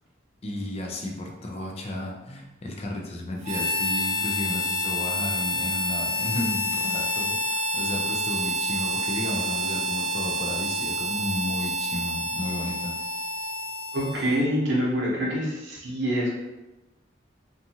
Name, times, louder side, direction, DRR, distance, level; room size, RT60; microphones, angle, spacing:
voice 1, 0.4-13.0, left 1 dB, 30° left, 1 dB, 0.4 m, -33 dB
Harmonica, 3.4-14.5, left 1 dB, 40° right, 0.5 m, -28 dB
voice 2, 13.9-16.3, equal, 70° right, -4 dB, 0.8 m, -26 dB
2.6 x 2.3 x 2.8 m, 1.0 s
head